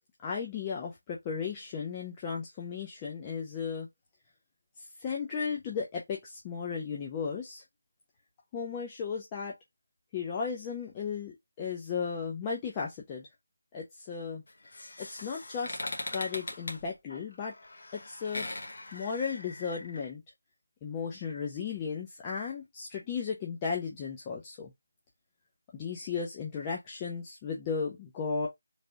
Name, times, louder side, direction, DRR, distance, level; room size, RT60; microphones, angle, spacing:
voice 1, 0.2-3.9 5.0-7.6 8.5-9.5 10.1-13.3 13.7-14.4 15.0-15.8 16.1-17.5 17.9-18.5 18.9-20.2 20.8-24.7 25.7-28.5, left 6 dB, 10° left, 0.4 m, -35 dB
sound 1, 14.5-20.1, left 2 dB, 45° left, 1.2 m, -41 dB
3.3 x 2.6 x 3.7 m
figure-of-eight pair, 175°, 0 cm